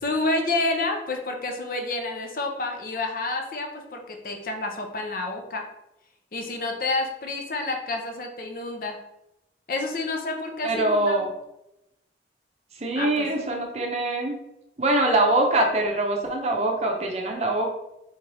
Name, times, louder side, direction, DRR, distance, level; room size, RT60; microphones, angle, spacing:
voice 1, 0.0-5.6 6.3-9.0 9.7-11.2 13.0-13.3, left 2 dB, 50° left, 3 dB, 0.7 m, -29 dB
voice 2, 10.6-11.3 12.7-14.4 14.8-17.7, right 2 dB, 35° right, 2 dB, 0.6 m, -23 dB
4.1 x 3.6 x 3.3 m, 0.88 s
head